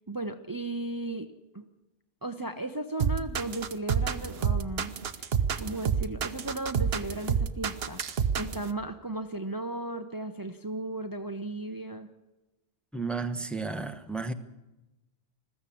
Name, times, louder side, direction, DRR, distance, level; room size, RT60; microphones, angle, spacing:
voice 1, 0.1-1.6 2.2-4.9 5.6-8.0 8.4-12.1, right 2 dB, 20° right, 7 dB, 0.9 m, -35 dB
sound 1, 3.0-8.7, right 7 dB, 70° right, 1.2 m, -28 dB
voice 2, 12.9-14.3, right 4 dB, ahead, 7 dB, 1.1 m, -33 dB
21.0 x 15.0 x 8.6 m, 1.0 s
omnidirectional pair, 1.1 m